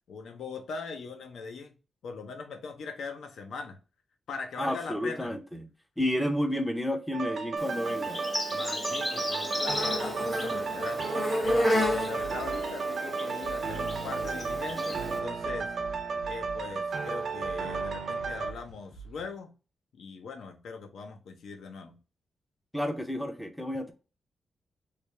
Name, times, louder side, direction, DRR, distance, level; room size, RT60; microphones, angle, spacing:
voice 1, 0.1-1.7 2.0-3.8 4.3-5.3 8.5-11.0 11.4-15.7 16.2-19.5 20.0-22.0, left 4 dB, 80° left, 0.6 m, -40 dB
voice 2, 4.6-5.7 6.0-8.2 22.7-23.9, left 1 dB, 5° left, 0.5 m, -31 dB
sound 1, 7.1-18.5, right 4 dB, 55° right, 0.5 m, -33 dB
Insect, 7.6-15.2, left 1 dB, 25° left, 0.9 m, -32 dB
sound 2, 11.4-12.7 13.4-19.4, right 4 dB, 60° left, 1.7 m, -48 dB
3.3 x 2.7 x 3.2 m
wide cardioid pair, 175°, 0 cm